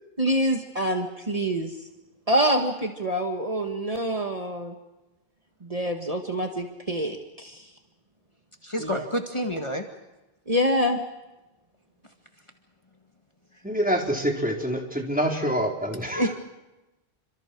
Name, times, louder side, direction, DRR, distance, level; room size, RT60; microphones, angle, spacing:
voice 1, 0.2-1.7 2.3-4.7 5.6-7.7 8.8-9.1 10.5-11.0, equal, 35° right, 3 dB, 1.9 m, -26 dB
voice 2, 8.6-9.8 16.2-16.3, equal, 30° left, 3 dB, 2.1 m, -28 dB
voice 3, 13.6-16.3, equal, 10° right, 0 dB, 4.3 m, -26 dB
29.0 x 26.0 x 4.8 m, 1.0 s
omnidirectional pair, 1.0 m